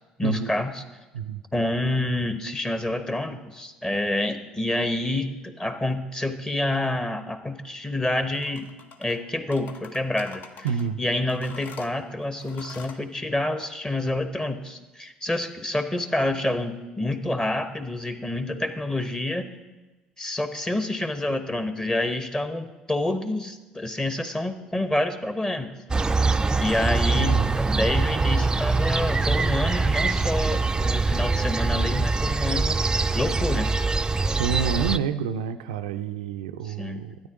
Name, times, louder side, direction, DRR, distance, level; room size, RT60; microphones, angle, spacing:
voice 1, 0.2-0.8 1.5-8.7 9.0-10.4 11.0-19.5 20.2-25.7 26.6-32.8 33.1-33.7 36.7-37.0, left 1 dB, 15° left, 8 dB, 1.1 m, -28 dB
sound 1, 8.3-9.2 9.5-10.9 11.3-13.0, left 5 dB, 50° left, 0.9 m, -45 dB
voice 2, 10.6-11.0 27.2-27.6 34.4-37.2, right 7 dB, 80° right, 9 dB, 0.4 m, -28 dB
sound 2, 25.9-35.0, right 3 dB, 20° right, 0.4 m, -23 dB
12.5 x 9.6 x 3.7 m, 1.1 s
hypercardioid pair, 55°, 4 cm